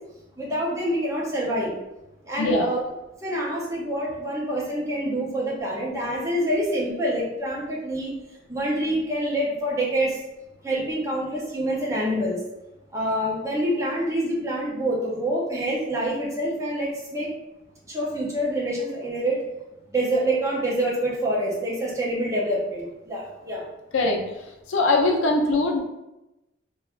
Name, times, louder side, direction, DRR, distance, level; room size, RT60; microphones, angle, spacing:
voice 1, 0.4-1.7 2.2-2.8 3.2-8.1 8.5-10.2 10.6-12.4 12.9-17.3 17.9-19.4 19.9-23.6, right 1 dB, 15° right, -6 dB, 0.6 m, -26 dB
voice 2, 2.4-2.7 23.9-24.2 24.7-25.8, left 2 dB, 85° left, 1 dB, 0.5 m, -21 dB
3.1 x 2.2 x 2.4 m, 0.93 s
head